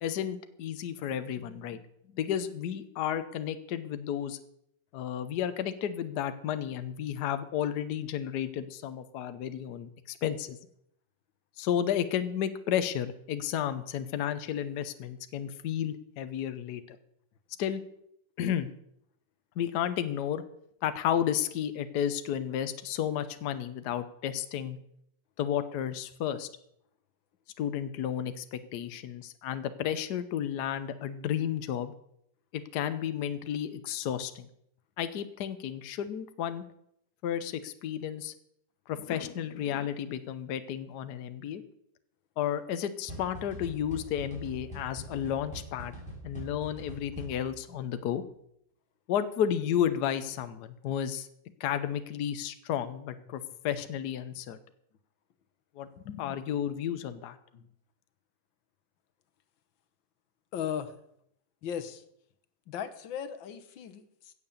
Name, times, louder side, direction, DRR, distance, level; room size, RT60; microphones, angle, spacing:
voice 1, 0.0-1.8 2.1-4.4 4.9-10.6 11.6-17.0 17.6-17.8 18.4-18.7 19.6-20.4 20.8-24.8 25.4-26.5 27.6-31.9 32.5-34.5 35.0-36.6 37.2-38.3 38.9-41.6 42.4-45.9 46.2-48.2 49.1-51.3 51.6-54.6 55.8-57.4, left 9 dB, 65° left, 11 dB, 1.3 m, -32 dB
sound 1, 43.1-47.7, right 1 dB, 5° left, 4.4 m, -43 dB
voice 2, 60.5-61.0 61.6-62.0 62.7-64.3, left 8 dB, 90° left, 11 dB, 1.8 m, -37 dB
16.0 x 6.7 x 7.2 m, 0.74 s
omnidirectional pair, 2.0 m